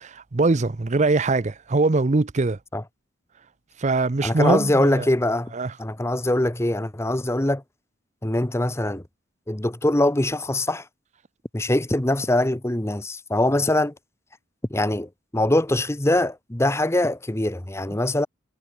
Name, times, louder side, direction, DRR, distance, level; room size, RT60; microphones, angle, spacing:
voice 1, 0.0-2.6 3.8-5.1 5.5-5.7, right 3 dB, 35° right, 0.6 m, -22 dB
voice 2, 4.2-5.5 5.8-7.6 8.2-9.0 9.5-10.8 11.5-13.9 14.7-18.3, left 1 dB, 15° left, 1.0 m, -23 dB
head